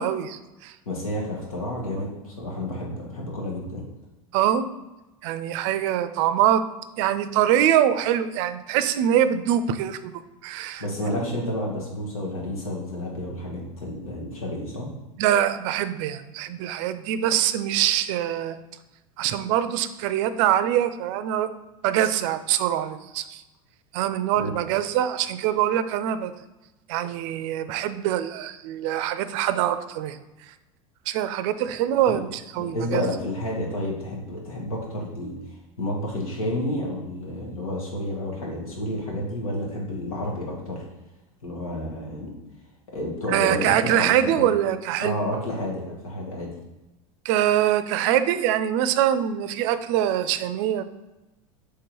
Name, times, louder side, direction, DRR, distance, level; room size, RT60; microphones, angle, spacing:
voice 1, 0.0-0.7 4.3-4.7 5.2-6.6 7.0-10.8 11.2-11.3 15.2-18.6 19.2-21.5 21.8-23.4 23.9-26.3 26.9-30.2 31.1-32.3 32.6-33.1 43.3-45.2 47.2-50.8, right 11 dB, 60° right, 12 dB, 0.4 m, -24 dB
voice 2, 0.8-3.8 10.8-14.9 24.4-24.5 32.1-32.2 32.6-35.4 35.8-40.8 41.4-42.3 42.9-44.5 45.0-46.5, left 1 dB, 85° left, -2 dB, 1.4 m, -30 dB
3.7 x 3.2 x 4.4 m, 1.0 s
hypercardioid pair, 85°, 18 cm